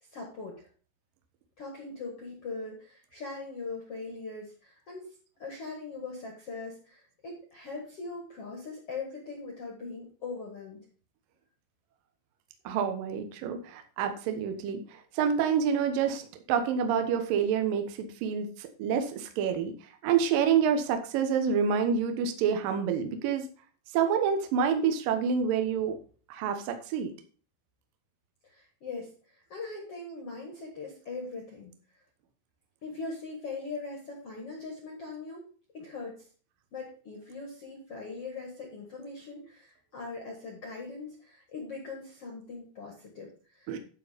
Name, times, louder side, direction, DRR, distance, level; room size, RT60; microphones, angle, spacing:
voice 1, 0.1-0.7 1.6-5.1 5.4-10.8 28.4-31.7 32.8-35.4 35.7-36.3 36.7-43.7, left 3 dB, 55° left, 1 dB, 1.6 m, -41 dB
voice 2, 12.6-19.7 20.0-23.5 23.9-26.0 26.3-27.1 43.7-43.8, right 7 dB, 70° right, 6 dB, 2.3 m, -28 dB
11.5 x 4.7 x 5.2 m, 0.40 s
omnidirectional pair, 5.4 m